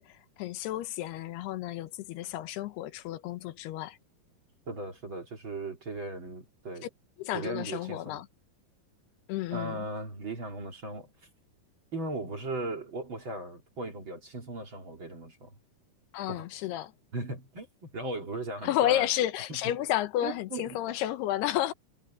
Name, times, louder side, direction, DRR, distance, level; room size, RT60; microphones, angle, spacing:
voice 1, 0.0-4.0 7.2-8.3 9.3-9.9 16.1-16.9 18.6-21.7, left 13 dB, 80° left, 3.0 m, -31 dB
voice 2, 4.7-6.9 7.3-8.2 9.5-11.1 11.9-15.5 16.3-16.4 17.1-17.7 17.9-19.1 20.2-20.9, right 2 dB, 35° right, 3.1 m, -37 dB
omnidirectional pair, 4.7 m